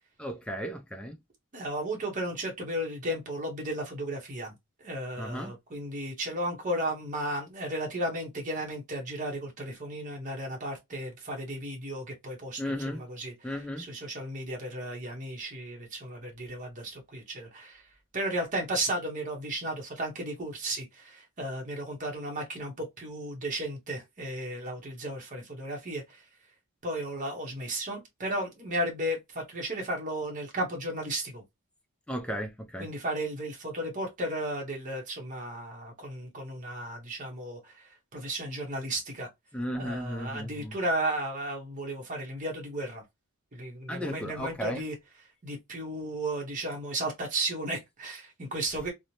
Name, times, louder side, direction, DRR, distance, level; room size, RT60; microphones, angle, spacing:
voice 1, 0.2-1.2 5.2-5.5 12.6-13.0 13.4-13.8 32.1-32.9 39.5-40.7 43.9-44.8, equal, 5° left, 0.4 m, -35 dB
voice 2, 1.5-4.5 4.8-17.9 18.1-26.2 26.8-31.4 32.8-39.3 39.8-43.0 43.5-44.9 45.4-48.9, right 1 dB, 35° right, 0.7 m, -34 dB
3.0 x 2.0 x 2.6 m
head